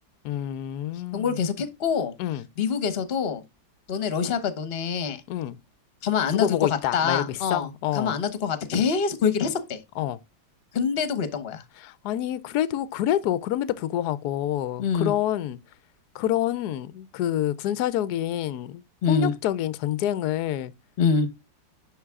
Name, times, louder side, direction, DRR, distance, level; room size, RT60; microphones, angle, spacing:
voice 1, 0.2-1.4 2.2-2.5 5.3-5.6 6.3-8.2 10.0-10.2 11.8-15.6 16.1-20.7, left 12 dB, 70° left, 1.1 m, -27 dB
voice 2, 1.1-2.1 2.6-3.4 3.9-5.2 6.0-6.6 6.9-7.7 7.9-9.8 10.7-11.6 14.8-15.1 19.0-19.3 21.0-21.3, left 6 dB, 40° left, 1.1 m, -25 dB
10.5 x 3.9 x 3.6 m
omnidirectional pair, 2.0 m